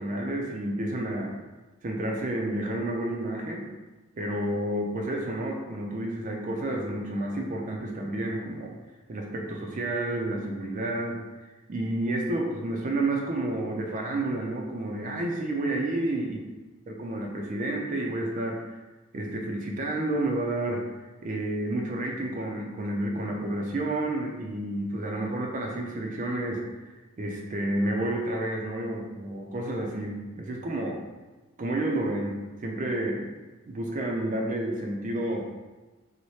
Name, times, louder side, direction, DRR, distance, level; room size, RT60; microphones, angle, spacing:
voice 1, 0.0-1.3 1.8-3.6 4.2-8.7 9.1-16.4 16.9-18.8 19.1-20.8 21.2-26.9 27.2-31.0 31.6-32.4 32.6-33.3 33.7-35.5, right 1 dB, 35° right, 0 dB, 0.4 m, -30 dB
3.1 x 2.1 x 4.1 m, 1.2 s
head